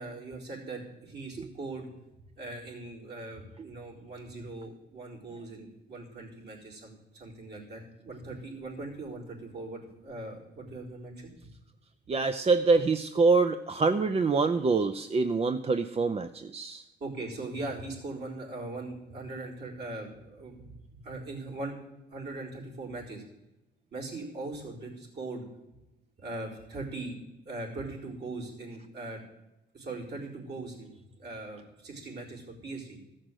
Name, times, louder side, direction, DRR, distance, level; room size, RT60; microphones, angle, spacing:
voice 1, 0.0-1.9 2.4-11.5 17.0-21.7 22.1-23.2 23.9-25.4 26.2-27.2 27.4-29.2 29.7-30.9 31.2-33.0, right 2 dB, 55° right, -2 dB, 4.4 m, -40 dB
voice 2, 12.1-16.8, right 4 dB, 30° right, 9 dB, 0.6 m, -25 dB
14.0 x 6.5 x 7.6 m, 0.96 s
cardioid pair, 90°, 20 cm